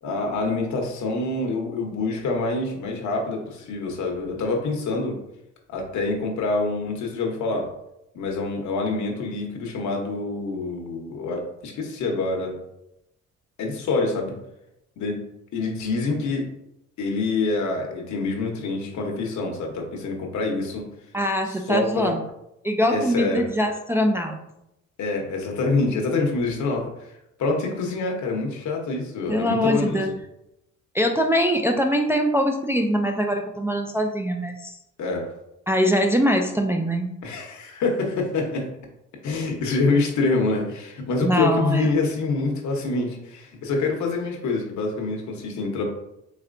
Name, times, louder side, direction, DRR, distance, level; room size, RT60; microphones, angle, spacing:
voice 1, 0.0-5.2 5.7-7.7 8.1-12.6 13.6-14.4 15.0-15.2 15.5-16.5 17.0-20.9 21.5-22.2 22.9-23.5 25.0-26.9 27.4-30.1 35.0-35.3 37.2-38.7 39.2-45.8, left 3 dB, 70° left, 1 dB, 1.0 m, -26 dB
voice 2, 21.1-22.2 22.6-24.4 29.3-30.1 30.9-34.8 35.7-37.1 41.2-41.9, equal, 10° right, 3 dB, 0.3 m, -22 dB
4.2 x 3.2 x 2.5 m, 0.84 s
cardioid pair, 90°, 30 cm